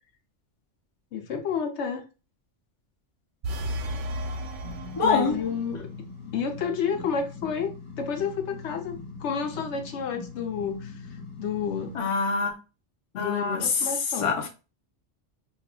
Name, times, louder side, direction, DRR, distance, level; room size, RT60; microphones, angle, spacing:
voice 1, 1.1-2.0 5.0-5.9 6.3-7.7 8.0-10.9 11.4-11.9 13.1-14.3, left 6 dB, 75° left, 0.9 m, -30 dB
sound 1, 3.4-5.7, equal, 75° right, 0.9 m, -33 dB
sound 2, 4.6-12.0, left 4 dB, 60° left, 1.1 m, -42 dB
voice 2, 5.0-5.4 11.9-12.5 13.2-14.5, left 4 dB, 30° left, 0.7 m, -25 dB
5.3 x 2.3 x 2.2 m
omnidirectional pair, 1.2 m